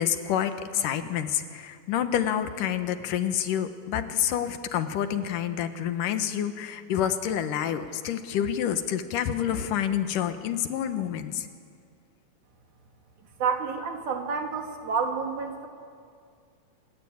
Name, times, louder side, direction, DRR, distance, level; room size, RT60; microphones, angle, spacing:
voice 1, 0.0-11.5, left 9 dB, 85° left, 9 dB, 2.8 m, -28 dB
voice 2, 13.4-15.7, right 5 dB, 70° right, 3 dB, 3.7 m, -29 dB
27.0 x 20.0 x 8.8 m, 2.2 s
omnidirectional pair, 3.7 m